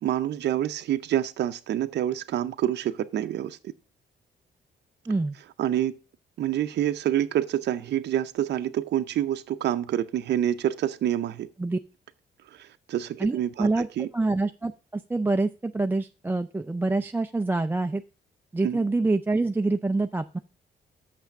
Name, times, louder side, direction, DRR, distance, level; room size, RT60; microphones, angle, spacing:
voice 1, 0.0-3.7 5.6-5.9 6.4-11.5 12.5-14.1 18.6-18.8, right 11 dB, 70° right, 0.6 m, -27 dB
voice 2, 13.2-13.9 14.1-18.0 18.5-20.4, right 3 dB, 10° right, 0.4 m, -26 dB
6.7 x 5.8 x 7.3 m
cardioid pair, 100°, 18 cm